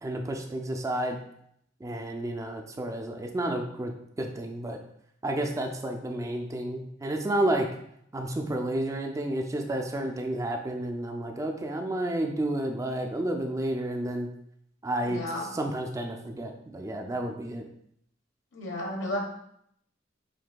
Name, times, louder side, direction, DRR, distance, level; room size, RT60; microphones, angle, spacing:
voice 1, 0.0-1.2 1.8-3.9 4.2-4.8 5.2-7.7 8.1-14.3 14.8-15.2 15.5-17.6, right 1 dB, 15° right, 3 dB, 0.4 m, -31 dB
voice 2, 15.0-15.5 18.5-19.2, left 1 dB, 90° left, 0 dB, 1.1 m, -32 dB
7.3 x 2.6 x 2.2 m, 0.72 s
head